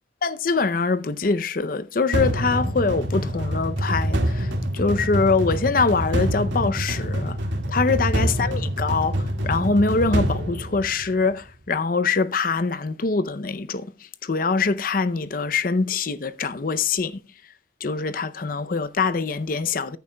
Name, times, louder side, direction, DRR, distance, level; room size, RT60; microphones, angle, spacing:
voice 1, 0.2-7.4 7.7-13.9 14.2-17.2 17.8-20.0, left 4 dB, 50° left, 0.6 m, -24 dB
sound 1, 2.1-11.3, equal, 90° right, 2.0 m, -26 dB
14.0 x 10.0 x 2.3 m
head